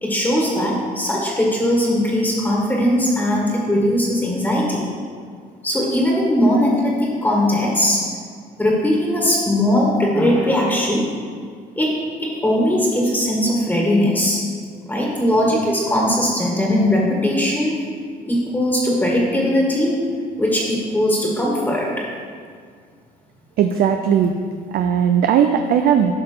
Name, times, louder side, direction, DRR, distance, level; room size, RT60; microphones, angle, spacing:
voice 1, 0.0-4.9 5.6-8.1 8.6-11.1 11.8-11.9 12.2-14.4 14.9-17.8 18.3-20.0 20.4-21.9, left 1 dB, 10° left, -3 dB, 1.6 m, -19 dB
voice 2, 23.6-24.3 24.7-26.1, right 8 dB, 65° right, 6 dB, 0.5 m, -17 dB
11.0 x 5.6 x 3.9 m, 2.1 s
cardioid pair, 110°, 17 cm